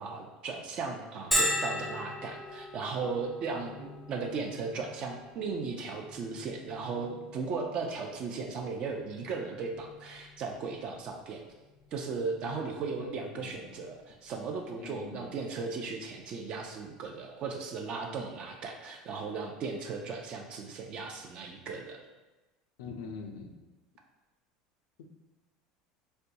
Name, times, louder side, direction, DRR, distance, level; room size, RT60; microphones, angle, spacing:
voice 1, 0.0-11.4 11.9-22.0, right 4 dB, 45° right, 2 dB, 0.4 m, -36 dB
Bell, 1.3-16.7, equal, ahead, 0.6 m, -40 dB
voice 2, 13.0-13.8 14.8-15.4 22.8-23.6 25.0-25.1, left 4 dB, 90° left, 4 dB, 0.4 m, -44 dB
4.2 x 2.2 x 2.6 m, 1.1 s
supercardioid pair, 120°, 2 cm